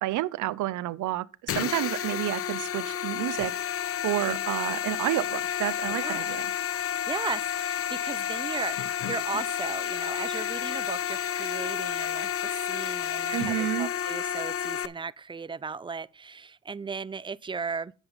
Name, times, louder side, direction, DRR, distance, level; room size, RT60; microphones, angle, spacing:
voice 1, 0.0-3.5 4.0-6.5 13.3-13.9, right 15 dB, 80° right, 0.6 m, -30 dB
sound 1, 1.5-14.9, left 10 dB, 50° left, 0.6 m, -31 dB
voice 2, 5.8-6.4 6.9-17.9, right 5 dB, 15° right, 0.3 m, -36 dB
9.6 x 7.8 x 4.0 m
cardioid pair, 90°, 30 cm